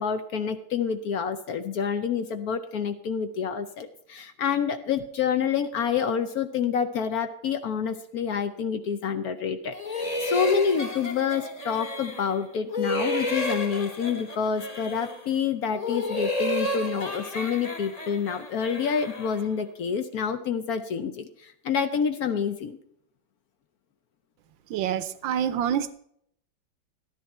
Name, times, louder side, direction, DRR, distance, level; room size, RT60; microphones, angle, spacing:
voice 1, 0.0-22.8, left 7 dB, 65° left, 9 dB, 1.0 m, -28 dB
sound 1, 9.7-12.4 12.7-15.3 15.7-19.5, left 1 dB, 25° left, 1.0 m, -31 dB
voice 2, 24.7-25.9, right 9 dB, 80° right, 14 dB, 1.5 m, -27 dB
13.0 x 10.5 x 4.2 m, 0.70 s
omnidirectional pair, 2.1 m